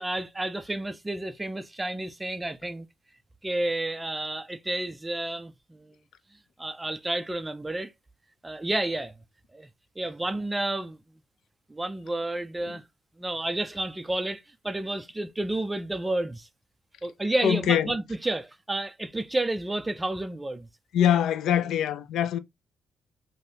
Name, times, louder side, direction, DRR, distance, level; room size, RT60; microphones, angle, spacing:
voice 1, 0.0-2.9 3.4-5.9 6.6-7.9 8.4-9.1 9.5-9.7 10.0-11.0 11.7-12.8 13.2-16.5 17.0-20.7, right 1 dB, 15° right, 0.3 m, -31 dB
voice 2, 17.4-17.9 20.9-22.4, left 10 dB, 75° left, 0.3 m, -23 dB
2.7 x 2.6 x 3.3 m
cardioid pair, 140°, 0 cm